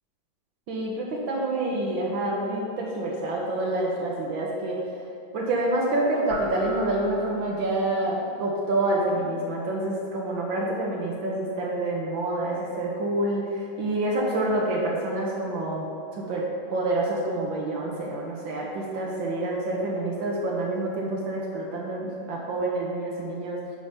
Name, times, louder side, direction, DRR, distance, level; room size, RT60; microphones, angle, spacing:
voice 1, 0.7-4.8 5.3-23.6, right 1 dB, 90° right, -3 dB, 1.9 m, -27 dB
sound 1, 6.3-7.9, right 2 dB, 60° right, 1.4 m, -38 dB
11.0 x 5.2 x 5.6 m, 2.5 s
omnidirectional pair, 2.1 m